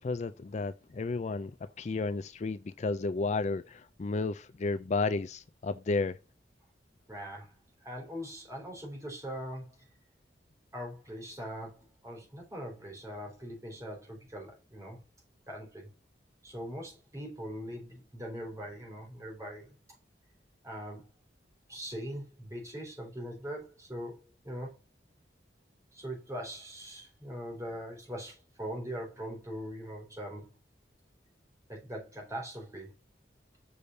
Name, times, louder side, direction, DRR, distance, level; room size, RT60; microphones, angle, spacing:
voice 1, 0.0-6.2, left 3 dB, 40° left, 0.4 m, -32 dB
voice 2, 7.1-7.5 7.8-9.8 10.7-15.0 15.5-15.9 16.4-19.8 20.6-21.0 21.7-24.7 25.9-30.5 31.7-32.9, equal, 20° right, 3.8 m, -41 dB
6.9 x 5.0 x 4.0 m
head